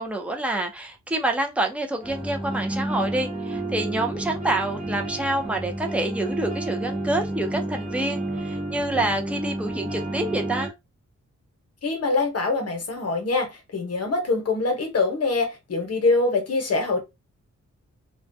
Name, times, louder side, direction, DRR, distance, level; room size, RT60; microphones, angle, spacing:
voice 1, 0.0-10.7, right 2 dB, 5° right, 0.4 m, -27 dB
sound 1, 2.0-10.7, right 1 dB, 20° right, 0.8 m, -30 dB
voice 2, 11.8-17.0, left 3 dB, 55° left, 0.9 m, -24 dB
2.3 x 2.2 x 2.6 m
wide cardioid pair, 135°, 30 cm